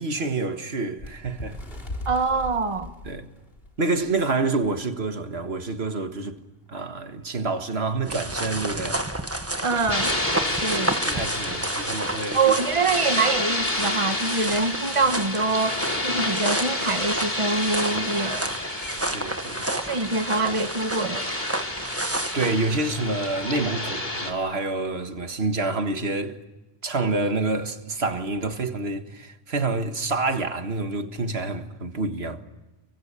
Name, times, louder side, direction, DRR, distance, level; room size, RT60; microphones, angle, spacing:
voice 1, 0.0-1.6 3.1-3.3 3.8-6.4 6.7-9.0 10.5-12.4 18.9-19.8 22.3-26.4 26.8-32.4, right 3 dB, 80° right, 1.9 m, -28 dB
Bird, 1.0-4.2 4.6-4.8 5.1-5.3 6.1-6.2, left 1 dB, 65° left, 3.7 m, -38 dB
voice 2, 2.0-2.9 9.6-10.1 10.6-10.9 12.3-18.5 19.8-21.3, right 4 dB, 30° right, 1.4 m, -25 dB
sound 1, 8.0-22.5, right 1 dB, 15° right, 1.4 m, -31 dB
sound 2, 9.9-24.3, left 1 dB, 45° left, 3.5 m, -30 dB
29.0 x 24.0 x 7.0 m
omnidirectional pair, 1.0 m